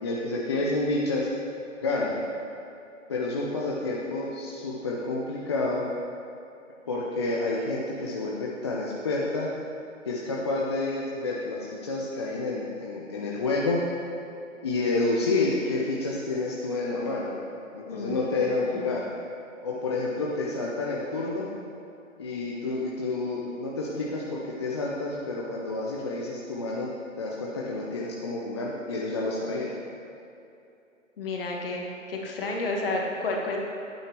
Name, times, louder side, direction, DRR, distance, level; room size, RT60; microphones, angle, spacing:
voice 1, 0.0-1.3 1.8-2.2 3.1-5.8 6.9-9.5 10.1-13.8 14.6-17.4 17.7-19.1 19.6-21.5 22.2-26.9 27.2-29.7, left 2 dB, 20° left, -4 dB, 0.5 m, -29 dB
voice 2, 17.9-18.9 31.2-33.6, left 2 dB, 45° left, 0 dB, 1.5 m, -31 dB
11.0 x 9.1 x 3.1 m, 2.7 s
figure-of-eight pair, 130°, 40 cm